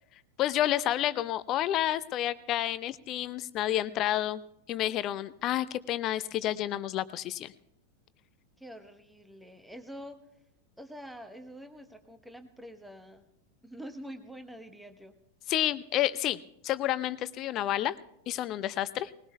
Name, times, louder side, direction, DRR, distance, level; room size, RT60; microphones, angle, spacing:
voice 1, 0.4-4.4 4.7-7.5 15.5-18.0 18.3-19.1, left 13 dB, 35° left, 17 dB, 0.5 m, -30 dB
voice 2, 8.6-10.2 10.8-13.2 13.6-15.1, equal, ahead, 7 dB, 1.1 m, -46 dB
20.0 x 20.0 x 2.3 m, 0.75 s
figure-of-eight pair, 90°, 0 cm